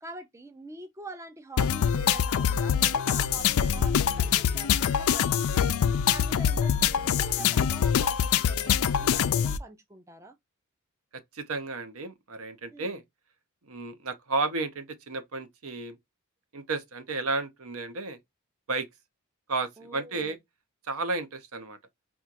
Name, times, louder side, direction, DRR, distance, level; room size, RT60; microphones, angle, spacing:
voice 1, 0.0-5.7 6.1-10.4 12.7-13.0 19.8-20.4, right 3 dB, 15° right, 0.4 m, -44 dB
sound 1, 1.6-9.6, left 8 dB, 70° left, 0.4 m, -24 dB
voice 2, 11.1-13.0 13.7-16.0 16.5-18.2 18.7-18.9 19.5-20.4 20.8-21.8, right 3 dB, 70° right, 0.8 m, -32 dB
4.4 x 2.3 x 2.5 m
head